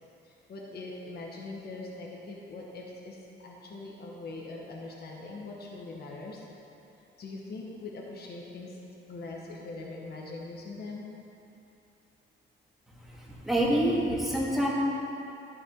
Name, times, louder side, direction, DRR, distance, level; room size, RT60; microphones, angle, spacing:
voice 1, 0.2-6.4 7.2-8.8 9.1-11.1, left 3 dB, 55° left, -3 dB, 1.4 m, -42 dB
voice 2, 13.0-14.7, right 1 dB, ahead, -6 dB, 2.2 m, -27 dB
11.0 x 6.2 x 4.6 m, 2.9 s
cardioid pair, 90°, 20 cm